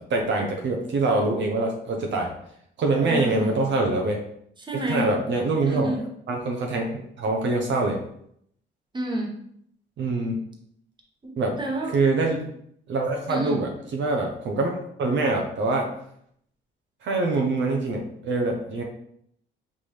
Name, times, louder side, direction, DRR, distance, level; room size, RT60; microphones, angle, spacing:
voice 1, 0.0-2.3 2.8-4.2 4.9-5.9 6.3-8.0 10.0-10.3 11.4-11.6 11.9-12.5 12.9-15.9 17.0-18.8, right 3 dB, 65° right, 1 dB, 0.8 m, -24 dB
voice 2, 3.0-3.6 4.6-5.1 5.6-6.0 8.9-9.3 11.2-12.0 13.3-13.6, right 1 dB, 25° right, -1 dB, 1.1 m, -29 dB
5.6 x 2.6 x 3.2 m, 0.70 s
cardioid pair, 90°, 20 cm